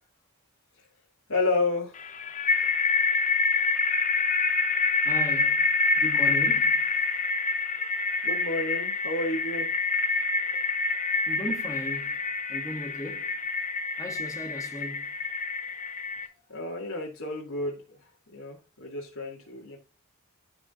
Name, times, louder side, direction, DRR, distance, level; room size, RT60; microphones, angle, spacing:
voice 1, 1.3-2.0 8.2-9.7 16.5-19.8, left 2 dB, 75° left, 2.0 m, -31 dB
sound 1, 2.0-16.3, left 4 dB, 35° left, 0.7 m, -27 dB
voice 2, 5.0-6.9 11.3-12.2 12.5-13.3 14.0-15.2, equal, 15° left, 1.8 m, -37 dB
14.0 x 4.9 x 2.4 m
head